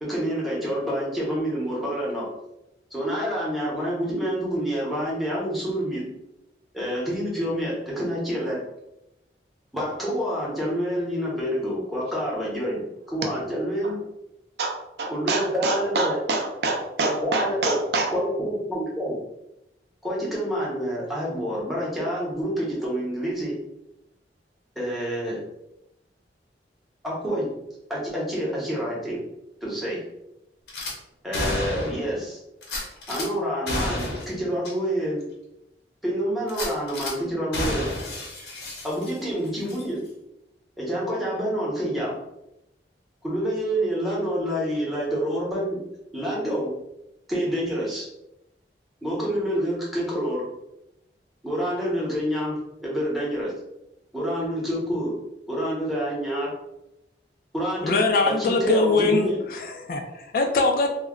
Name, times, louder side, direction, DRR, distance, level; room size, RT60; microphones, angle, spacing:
voice 1, 0.0-2.3 2.9-6.1 6.7-8.6 9.7-12.8 13.1-14.0 15.1-16.2 17.0-17.8 18.1-19.2 20.0-23.5 24.8-25.4 27.0-27.5 27.9-29.2 29.6-30.0 31.2-32.4 33.1-35.2 36.0-37.9 38.8-40.0 40.8-42.1 43.2-45.8 46.1-46.7 47.3-48.1 49.0-50.4 51.4-53.5 54.1-55.2 55.5-56.5 57.5-58.0 58.3-59.4, equal, ahead, -6 dB, 0.8 m, -27 dB
voice 2, 14.6-18.1, right 3 dB, 65° right, 2 dB, 0.5 m, -26 dB
Gunshot gunfire / Glass, 30.7-30.9 31.3-32.1 32.6-33.3 33.7-34.3 34.6-34.7 35.2-35.3 36.5-37.1 37.5-39.3 39.7-39.8, left 1 dB, 70° left, 0.8 m, -30 dB
voice 3, 57.8-60.9, left 3 dB, 50° left, 4 dB, 0.3 m, -22 dB
2.2 x 2.1 x 3.5 m, 0.89 s
head